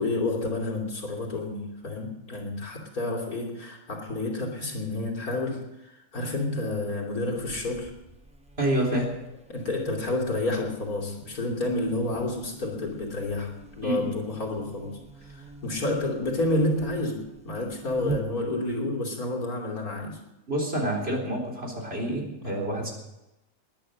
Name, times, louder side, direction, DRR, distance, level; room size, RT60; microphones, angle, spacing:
voice 1, 0.0-7.9 9.5-20.2 22.4-22.6, left 2 dB, 75° left, 0 dB, 3.5 m, -30 dB
Buzz, 7.4-18.8, right 3 dB, 5° right, 0.8 m, -43 dB
voice 2, 8.6-9.1 13.8-14.2 20.5-22.9, right 1 dB, 40° right, 0 dB, 4.1 m, -28 dB
20.5 x 10.0 x 6.4 m, 0.94 s
omnidirectional pair, 1.5 m